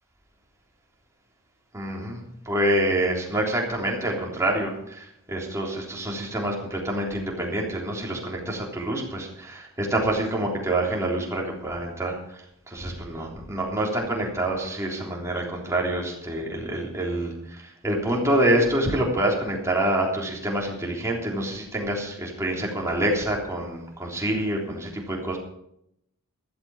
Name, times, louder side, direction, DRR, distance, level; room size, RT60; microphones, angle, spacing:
voice 1, 1.7-25.4, right 1 dB, 15° right, -2 dB, 3.5 m, -27 dB
15.0 x 12.5 x 4.9 m, 0.76 s
head